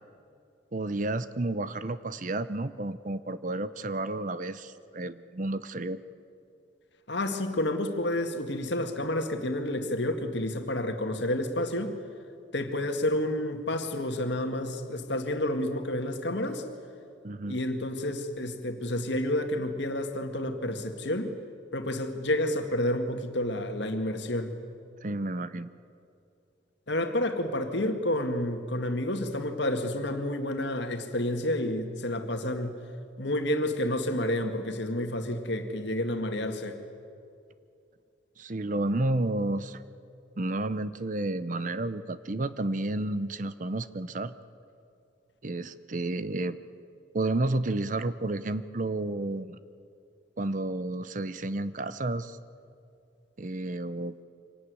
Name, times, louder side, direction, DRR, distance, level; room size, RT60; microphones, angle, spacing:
voice 1, 0.7-6.0 17.2-17.6 25.0-25.7 38.4-39.8 40.4-44.3 45.4-46.6 47.1-49.6 50.4-52.4 53.4-54.1, right 2 dB, 40° right, 14 dB, 0.7 m, -31 dB
voice 2, 7.1-12.0 12.5-16.6 17.5-21.3 21.7-24.5 26.9-32.8 33.2-36.8, left 1 dB, 60° left, 6 dB, 2.0 m, -30 dB
25.0 x 18.0 x 9.6 m, 2.5 s
head